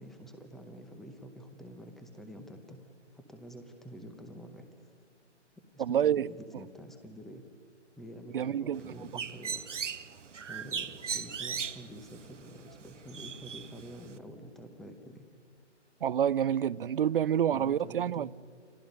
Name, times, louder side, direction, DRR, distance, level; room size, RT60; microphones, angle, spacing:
voice 1, 0.0-4.9 5.6-7.4 8.0-9.7 10.5-15.2 17.5-18.3, equal, ahead, 0.7 m, -48 dB
voice 2, 5.8-6.3 8.3-8.9 16.0-18.3, right 9 dB, 50° right, 0.5 m, -28 dB
Bird, 8.7-14.2, right 6 dB, 80° right, 1.1 m, -39 dB
29.0 x 27.0 x 5.3 m
hypercardioid pair, 150°, 36 cm